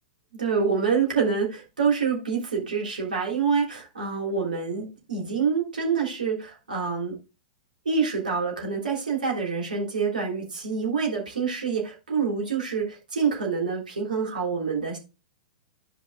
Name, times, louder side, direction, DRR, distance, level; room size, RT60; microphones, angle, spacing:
voice 1, 0.3-7.2 7.8-15.0, right 5 dB, 70° right, 0 dB, 3.2 m, -26 dB
14.0 x 5.2 x 2.3 m, 0.29 s
figure-of-eight pair, 100°, 5 cm